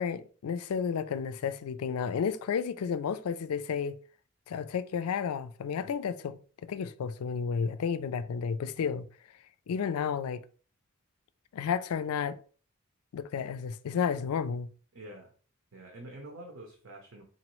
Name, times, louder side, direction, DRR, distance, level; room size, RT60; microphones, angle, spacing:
voice 1, 0.0-4.0 4.5-6.4 6.7-9.1 9.7-10.4 11.5-12.4 13.1-14.7, left 6 dB, 85° left, 0.4 m, -32 dB
voice 2, 14.9-15.3 15.7-17.2, right 1 dB, 60° right, 0.7 m, -46 dB
4.0 x 3.0 x 3.0 m
head